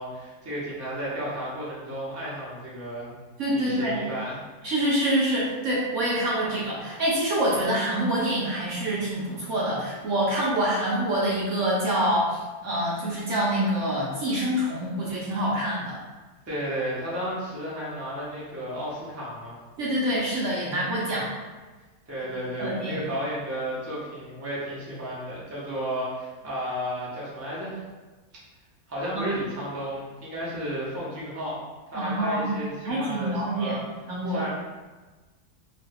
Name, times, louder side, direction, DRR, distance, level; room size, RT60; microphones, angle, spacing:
voice 1, 0.0-3.1 3.5-4.4 16.5-19.6 22.1-27.8 28.9-31.6 31.9-33.8 34.3-34.5, equal, 20° right, -8 dB, 0.3 m, -33 dB
voice 2, 3.4-4.0 4.6-16.0 19.8-21.3 22.6-23.0 29.1-29.3 31.9-32.5 32.8-33.8 34.1-34.4, right 1 dB, 60° right, -6 dB, 0.8 m, -26 dB
3.0 x 2.2 x 3.3 m, 1.2 s
omnidirectional pair, 1.8 m